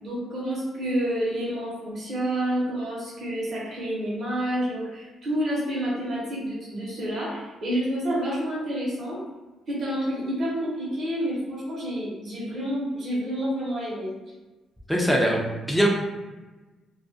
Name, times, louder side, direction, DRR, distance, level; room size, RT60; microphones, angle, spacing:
voice 1, 0.0-9.2 9.7-14.2, equal, 50° right, -7 dB, 0.9 m, -29 dB
voice 2, 14.9-15.9, equal, ahead, -1 dB, 0.5 m, -22 dB
2.3 x 2.2 x 2.6 m, 1.2 s
cardioid pair, 90°, 0 cm